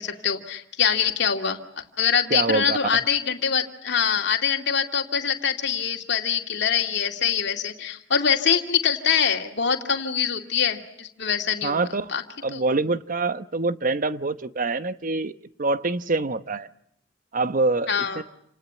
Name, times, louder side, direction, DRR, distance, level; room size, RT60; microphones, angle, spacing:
voice 1, 0.0-11.8 12.1-12.2 12.5-12.6 17.9-18.2, left 7 dB, 65° left, 4 dB, 2.5 m, -24 dB
voice 2, 2.3-2.8 11.6-12.1 12.4-15.3 15.6-16.7 17.3-18.2, right 3 dB, 45° right, 12 dB, 1.0 m, -25 dB
29.0 x 19.0 x 10.0 m, 0.73 s
head